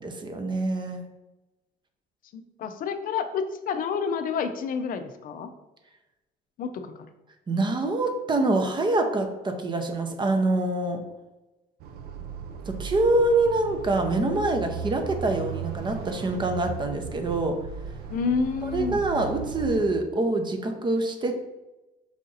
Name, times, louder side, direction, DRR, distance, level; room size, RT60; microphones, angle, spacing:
voice 1, 0.0-1.0 7.5-11.0 12.7-17.6 18.6-21.3, right 2 dB, 25° right, 6 dB, 0.7 m, -25 dB
voice 2, 2.3-5.5 6.6-7.1 18.1-19.0, left 5 dB, 55° left, 8 dB, 0.5 m, -29 dB
sound 1, 11.8-19.8, right 6 dB, 70° right, 0.5 m, -36 dB
4.9 x 2.7 x 3.9 m, 1.0 s
cardioid pair, 110°, 17 cm